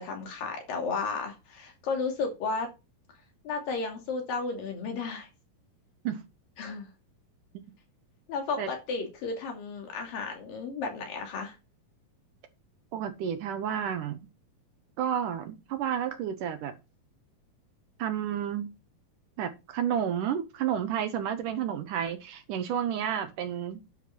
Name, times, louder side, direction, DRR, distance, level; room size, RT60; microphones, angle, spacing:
voice 1, 0.0-2.7 3.4-5.3 6.6-6.9 8.3-11.6, left 4 dB, 70° left, 4.2 m, -33 dB
voice 2, 12.9-14.2 15.0-16.7 18.0-18.7 19.4-23.8, right 9 dB, 70° right, 2.3 m, -31 dB
10.5 x 5.8 x 5.9 m
omnidirectional pair, 4.2 m